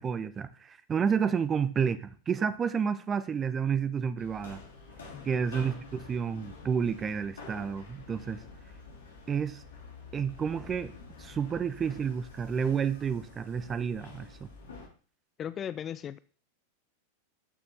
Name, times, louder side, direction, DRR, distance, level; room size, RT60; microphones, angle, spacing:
voice 1, 0.0-4.6 5.2-8.4 9.3-9.6 10.1-10.9 11.2-14.5, right 7 dB, 20° right, 0.9 m, -30 dB
sound 1, 4.2-14.9, left 4 dB, 65° left, 2.4 m, -48 dB
voice 2, 15.4-16.2, left 9 dB, 25° left, 0.4 m, -37 dB
12.5 x 6.8 x 3.5 m
figure-of-eight pair, 90°, 0 cm